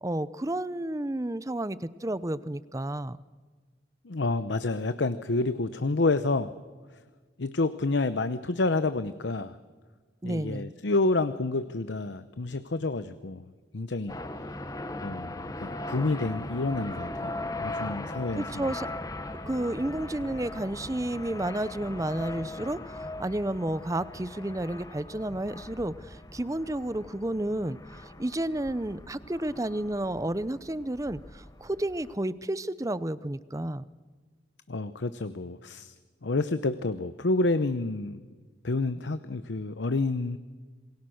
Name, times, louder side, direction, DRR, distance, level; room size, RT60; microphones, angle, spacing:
voice 1, 0.0-3.2 10.2-10.7 18.3-18.9 19.5-33.8, right 1 dB, 20° right, 17 dB, 0.6 m, -31 dB
voice 2, 4.0-6.5 7.4-9.6 10.2-13.5 13.7-14.2 15.0-18.7 34.7-35.9 36.2-38.2 38.6-40.4, left 3 dB, 80° left, 12 dB, 0.8 m, -29 dB
sound 1, 14.1-32.1, left 2 dB, 20° left, 1.2 m, -39 dB
27.5 x 21.0 x 6.4 m, 1.5 s
head